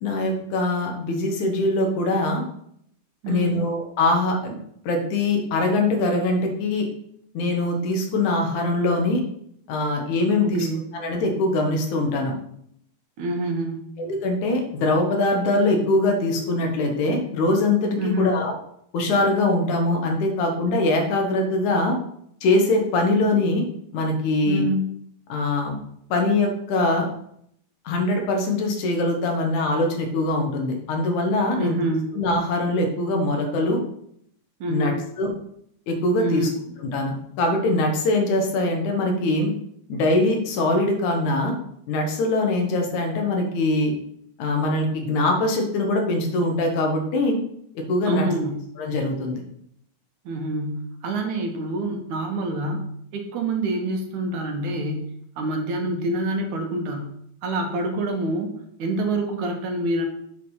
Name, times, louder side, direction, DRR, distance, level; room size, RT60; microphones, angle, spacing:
voice 1, 0.0-2.4 3.3-4.6 4.8-6.9 7.3-9.2 9.7-10.7 10.9-12.3 14.0-18.5 18.9-22.0 22.4-23.7 23.9-24.6 25.3-25.8 26.1-27.1 27.9-31.8 32.1-33.8 34.7-35.3 35.9-36.5 36.8-39.5 39.9-41.6 41.9-43.9 44.4-47.4 47.9-48.3 48.8-49.4, left 2 dB, 70° left, 2 dB, 2.7 m, -22 dB
voice 2, 3.2-3.6 10.4-10.8 13.2-13.9 18.0-18.4 24.5-24.9 31.6-32.1 34.6-35.1 36.2-36.6 48.0-48.5 50.3-52.8 53.1-55.0 55.4-57.1 57.4-60.1, right 1 dB, 70° right, 3 dB, 2.5 m, -26 dB
7.9 x 4.9 x 5.6 m, 0.70 s
omnidirectional pair, 3.6 m